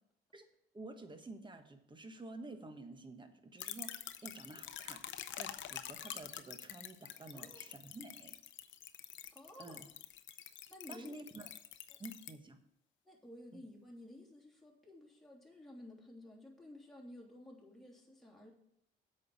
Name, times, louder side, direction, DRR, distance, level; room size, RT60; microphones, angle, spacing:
voice 1, 0.7-5.1 5.4-8.4 8.6-8.7 9.6-9.9 10.9-11.5 12.0-12.6 13.5-13.6, right 2 dB, 25° right, 7 dB, 1.3 m, -50 dB
sound 1, 3.6-12.3, left 11 dB, 70° left, 0.7 m, -47 dB
voice 2, 7.3-7.6 9.3-9.9 10.7-11.1 13.0-18.5, left 1 dB, ahead, -3 dB, 3.0 m, -54 dB
8.2 x 5.4 x 7.3 m, 0.75 s
cardioid pair, 90°, 20 cm